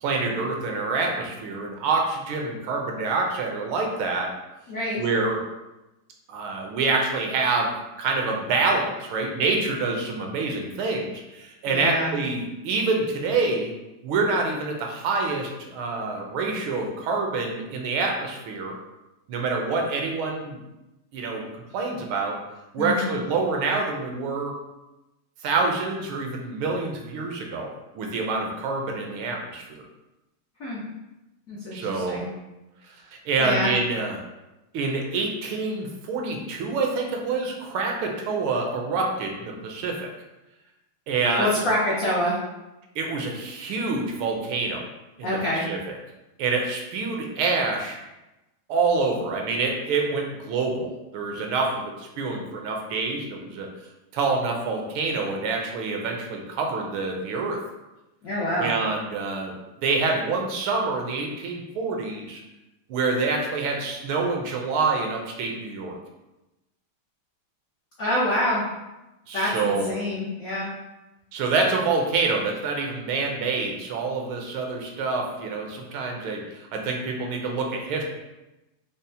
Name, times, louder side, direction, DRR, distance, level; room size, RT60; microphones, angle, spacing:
voice 1, 0.0-4.3 5.0-5.4 6.3-7.7 8.0-13.7 14.0-18.7 19.3-20.6 21.1-21.5 21.7-22.4 22.7-24.6 25.4-27.7 27.9-29.8 31.7-32.2 33.1-34.2 34.7-40.0 41.1-41.5 42.9-44.9 45.2-45.8 46.4-48.0 48.7-53.7 54.1-57.6 58.6-62.4 62.9-66.0 69.3-69.9 71.3-78.1, right 3 dB, 75° right, 1 dB, 1.4 m, -26 dB
voice 2, 4.7-5.0 11.7-12.1 22.8-23.1 30.6-30.8 31.5-32.3 33.4-33.7 41.4-42.4 45.2-45.7 58.2-58.7 68.0-68.6 69.3-70.7, left 1 dB, 75° left, -6 dB, 0.7 m, -26 dB
5.4 x 2.0 x 2.6 m, 0.99 s
omnidirectional pair, 2.3 m